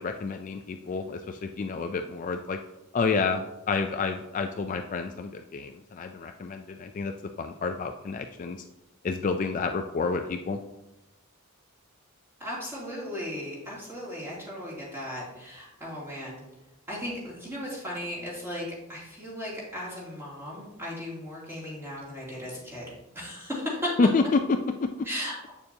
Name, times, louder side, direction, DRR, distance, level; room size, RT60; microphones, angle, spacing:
voice 1, 0.0-2.6 2.9-7.1 7.4-8.6 9.0-10.6 24.0-24.9, left 4 dB, 35° left, 5 dB, 0.3 m, -29 dB
voice 2, 12.4-16.4 16.9-24.0 25.0-25.5, left 1 dB, 10° right, -7 dB, 2.7 m, -36 dB
8.1 x 6.8 x 2.8 m, 0.94 s
head